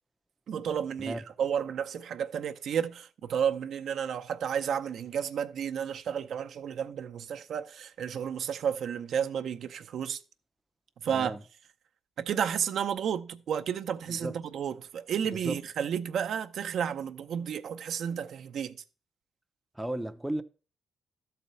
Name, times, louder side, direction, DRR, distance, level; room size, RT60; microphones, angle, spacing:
voice 1, 0.5-10.2 11.0-11.4 12.2-18.8, right 8 dB, 65° right, 0.7 m, -32 dB
voice 2, 11.1-11.4 14.1-14.4 15.4-15.6 19.7-20.4, right 1 dB, 5° right, 0.6 m, -34 dB
12.5 x 4.3 x 5.5 m
cardioid pair, 90°, 0 cm